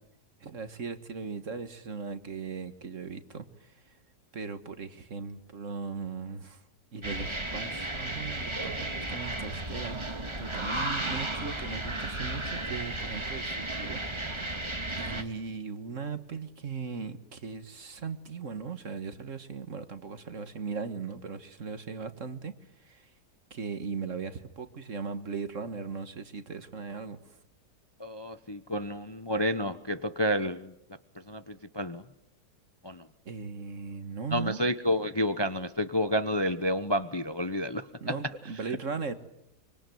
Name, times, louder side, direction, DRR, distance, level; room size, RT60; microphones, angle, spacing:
voice 1, 0.4-4.0 4.3-6.6 6.9-14.4 15.0-23.1 23.5-27.4 33.3-34.6 38.0-39.1, right 5 dB, 50° right, 10 dB, 1.9 m, -38 dB
sound 1, 7.0-15.2, right 1 dB, 15° right, 2.1 m, -34 dB
voice 2, 28.0-30.7 31.3-32.0 32.8-33.0 34.3-37.9, equal, 20° left, 10 dB, 0.9 m, -30 dB
25.5 x 24.5 x 9.3 m, 0.78 s
omnidirectional pair, 1.7 m